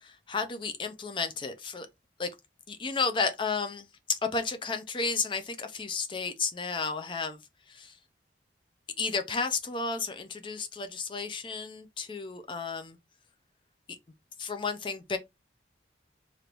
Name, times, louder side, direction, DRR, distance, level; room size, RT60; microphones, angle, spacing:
voice 1, 0.0-1.9 2.2-2.3 2.7-7.4 7.7-7.9 9.0-13.0 14.4-15.2, left 4 dB, 25° left, 0.4 m, -32 dB
3.3 x 2.5 x 2.9 m
head